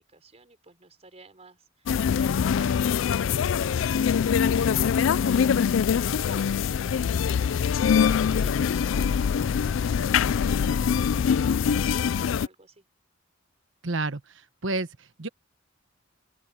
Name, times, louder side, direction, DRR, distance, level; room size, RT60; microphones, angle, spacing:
voice 1, 0.0-12.8, right 2 dB, 35° right, 4.7 m, -52 dB
sound 1, 1.9-12.5, left 7 dB, 75° left, 0.4 m, -23 dB
voice 2, 13.8-14.2 14.6-15.3, right 2 dB, 70° right, 1.2 m, -29 dB
open air
head